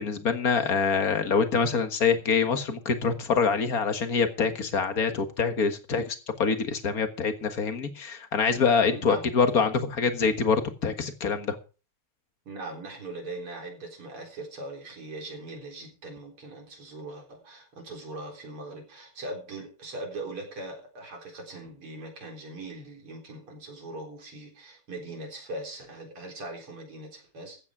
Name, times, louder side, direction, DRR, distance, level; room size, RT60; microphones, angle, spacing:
voice 1, 0.0-11.6, left 5 dB, 45° left, 8 dB, 1.9 m, -25 dB
voice 2, 8.9-9.2 12.5-27.6, right 2 dB, 90° right, 1 dB, 4.8 m, -40 dB
15.0 x 9.3 x 4.8 m, 0.35 s
omnidirectional pair, 2.3 m